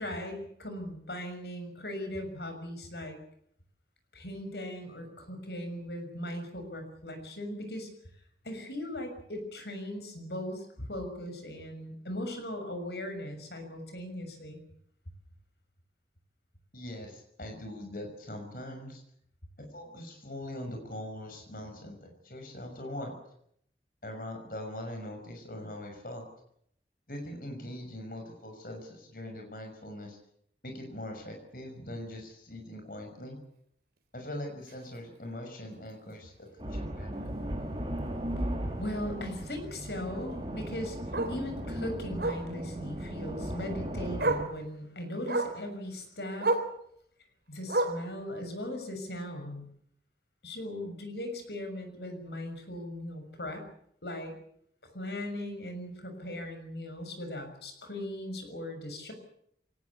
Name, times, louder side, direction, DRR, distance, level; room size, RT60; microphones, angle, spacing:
voice 1, 0.0-3.2 4.1-7.9 8.4-14.6 37.7-37.8 38.4-46.6 47.5-49.7 50.4-53.7 54.0-54.3 54.9-59.1, left 1 dB, 75° left, 6 dB, 6.5 m, -38 dB
voice 2, 16.7-19.0 19.6-23.1 24.0-26.2 27.1-30.2 30.6-33.4 34.1-37.3, left 1 dB, 55° left, 3 dB, 6.1 m, -42 dB
Bark, 34.7-34.8 35.2-35.4 35.7-35.8 36.1-36.2 37.6-37.7 40.2-40.3 41.1-41.4 42.2-42.5 43.7-43.8 44.2-44.5 45.3-45.6 46.4-46.7 47.7-48.1 49.1-49.2, right 2 dB, 65° right, 3.7 m, -29 dB
sound 1, 36.6-44.4, right 1 dB, 30° right, 3.8 m, -37 dB
23.5 x 19.0 x 8.5 m, 0.70 s
head